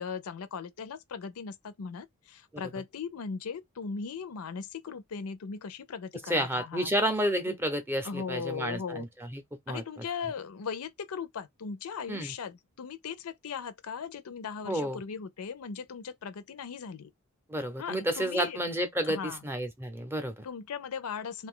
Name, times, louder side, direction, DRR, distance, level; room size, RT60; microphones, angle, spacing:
voice 1, 0.0-6.9 7.5-7.6 8.0-9.1 9.7-17.1 17.8-18.6 19.0-19.4 20.4-21.5, left 6 dB, 80° left, 0.5 m, -38 dB
voice 2, 6.2-10.0 12.1-12.3 14.6-15.0 17.5-20.5, equal, 10° right, 0.6 m, -31 dB
2.6 x 2.3 x 3.6 m
head